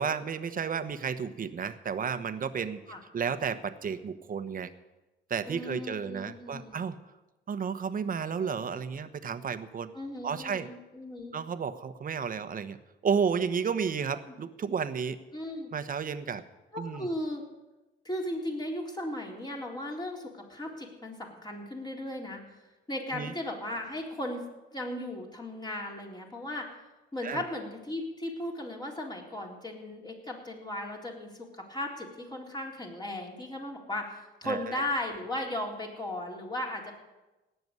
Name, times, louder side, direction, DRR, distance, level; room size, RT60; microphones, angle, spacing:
voice 1, 0.0-2.8 3.1-4.7 5.3-7.0 7.5-9.9 10.2-10.7 11.3-12.8 13.0-15.2 15.7-16.4 16.8-17.1 23.1-23.3 27.2-27.4 34.4-34.8, right 6 dB, 45° right, 12 dB, 1.1 m, -32 dB
voice 2, 5.5-6.9 9.9-11.3 14.1-14.2 15.3-15.7 16.7-17.4 18.0-24.4 24.7-26.7 27.1-36.9, left 1 dB, 20° left, -1 dB, 3.7 m, -36 dB
17.5 x 7.0 x 9.6 m, 1.1 s
cardioid pair, 90°, 20 cm